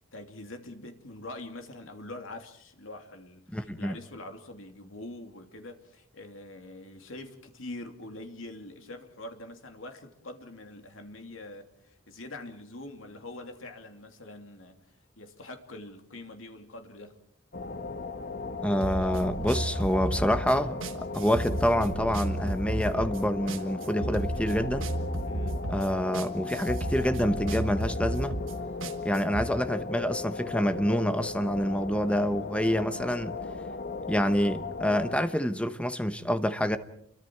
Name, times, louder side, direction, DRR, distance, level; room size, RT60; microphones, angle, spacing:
voice 1, 0.1-14.8 15.2-17.2 25.2-25.6, left 2 dB, 75° left, 2.7 m, -44 dB
voice 2, 3.5-3.9 18.6-20.8 21.1-24.9 25.7-28.3 29.0-33.4 34.1-36.8, equal, 5° left, 1.0 m, -27 dB
sound 1, 17.5-35.2, left 4 dB, 55° left, 1.3 m, -37 dB
sound 2, 18.8-29.5, right 1 dB, 70° right, 1.5 m, -33 dB
29.0 x 23.0 x 4.6 m
head